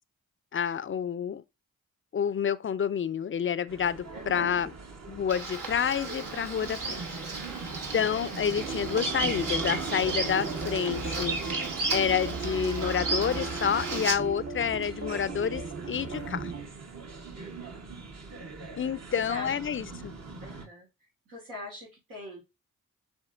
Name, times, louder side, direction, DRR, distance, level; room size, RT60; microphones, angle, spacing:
voice 1, 0.5-1.4 2.1-4.7 5.1-7.2 7.9-11.4 11.9-15.6 15.9-16.5 18.8-20.1, left 8 dB, 40° left, 0.4 m, -29 dB
sound 1, 3.7-20.7, right 3 dB, 50° right, 1.0 m, -40 dB
voice 2, 4.1-4.6 17.3-17.8 18.6-19.5 20.4-20.9 21.3-22.4, left 1 dB, 90° right, 1.9 m, -44 dB
Bird vocalization bird call bird song, 5.3-14.1, right 3 dB, 75° right, 1.1 m, -34 dB
sound 2, 8.5-16.7, right 5 dB, 35° right, 0.7 m, -39 dB
7.0 x 2.7 x 2.5 m
supercardioid pair, 40°, 33 cm